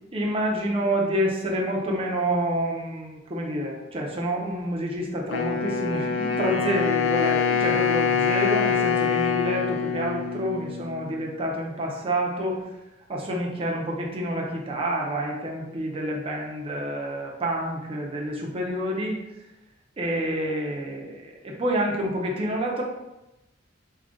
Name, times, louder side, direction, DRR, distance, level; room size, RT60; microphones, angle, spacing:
voice 1, 0.1-12.7 13.1-19.2 20.0-22.8, right 1 dB, 30° right, -1 dB, 0.6 m, -28 dB
Wind instrument woodwind instrument, 5.3-11.3, left 6 dB, 75° left, 0.4 m, -25 dB
3.6 x 2.4 x 3.7 m, 0.95 s
head